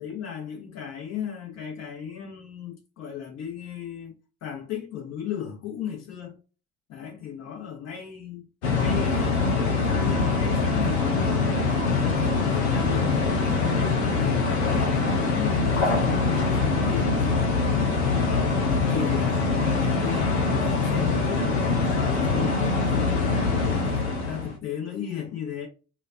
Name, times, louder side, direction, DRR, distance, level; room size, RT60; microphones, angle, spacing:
voice 1, 0.0-4.1 4.4-6.4 6.9-8.5 8.7-11.8 12.2-14.9 15.2-23.8 24.3-25.7, left 8 dB, 50° left, 1.9 m, -36 dB
sound 1, 8.6-24.6, left 4 dB, 75° left, 0.9 m, -23 dB
4.9 x 2.6 x 2.6 m
figure-of-eight pair, 55°, 33 cm